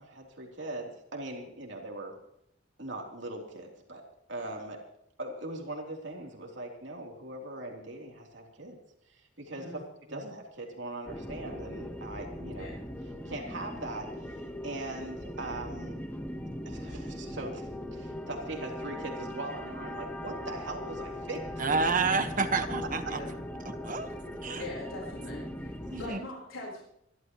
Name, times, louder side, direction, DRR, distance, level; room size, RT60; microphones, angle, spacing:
voice 1, 0.0-2.2 2.8-4.0 4.3-4.8 5.2-8.8 9.1-9.8 10.1-12.7 13.3-16.0 16.7-21.4 23.0-23.2, right 2 dB, 60° right, 0 dB, 3.4 m, -40 dB
sound 1, 11.1-26.1, left 1 dB, 10° left, 1.2 m, -39 dB
voice 2, 21.6-23.2 23.8-24.1 24.4-24.6 25.9-26.2, right 4 dB, 40° right, 7 dB, 1.4 m, -29 dB
voice 3, 24.6-25.7 26.0-26.8, left 1 dB, 90° left, -3 dB, 4.3 m, -41 dB
27.0 x 12.5 x 3.1 m, 0.76 s
head